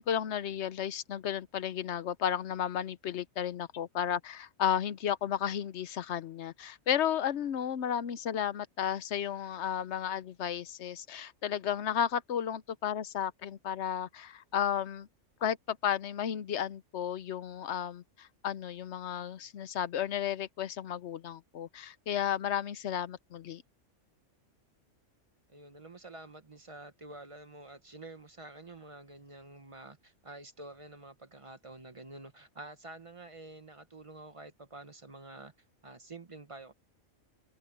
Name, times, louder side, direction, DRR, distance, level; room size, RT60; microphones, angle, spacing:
voice 1, 0.0-15.1 15.4-23.6, left 9 dB, 65° left, 0.9 m, -33 dB
voice 2, 25.5-35.5 35.8-36.7, right 2 dB, 25° right, 1.0 m, -49 dB
omnidirectional pair, 1.3 m